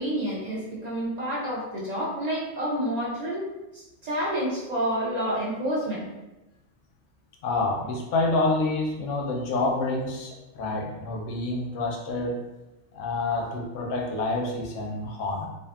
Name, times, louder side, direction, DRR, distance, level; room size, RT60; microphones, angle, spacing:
voice 1, 0.0-3.4 3.7-6.1, equal, 45° right, -6 dB, 0.6 m, -29 dB
voice 2, 7.4-12.4 12.9-15.5, left 2 dB, 85° left, 0 dB, 0.9 m, -28 dB
2.5 x 2.4 x 2.3 m, 1.0 s
omnidirectional pair, 1.2 m